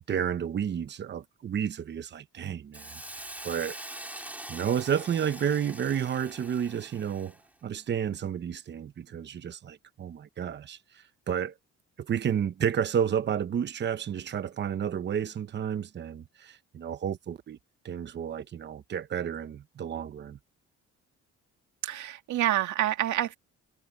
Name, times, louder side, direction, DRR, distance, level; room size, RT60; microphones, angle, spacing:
voice 1, 0.1-3.8 4.2-7.3 7.6-11.5 12.0-17.6 17.8-20.4, right 8 dB, 35° right, 0.9 m, -31 dB
Hiss, 2.7-7.5, right 1 dB, 5° right, 3.3 m, -43 dB
voice 2, 21.8-23.4, right 13 dB, 75° right, 2.1 m, -27 dB
cardioid pair, 155°, 29 cm